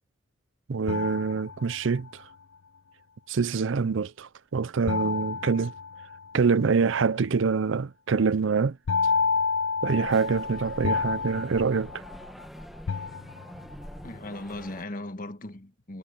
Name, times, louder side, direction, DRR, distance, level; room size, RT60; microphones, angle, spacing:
voice 1, 0.7-2.3 3.3-5.7 6.3-8.8 9.8-12.0, right 5 dB, 65° right, 0.5 m, -25 dB
sound 1, 0.9-2.1 4.9-6.5 8.9-12.4 12.9-13.8, left 5 dB, 70° left, 0.4 m, -29 dB
sound 2, 9.9-14.9, equal, ahead, 1.1 m, -45 dB
voice 2, 14.0-16.0, left 2 dB, 40° left, 1.5 m, -38 dB
head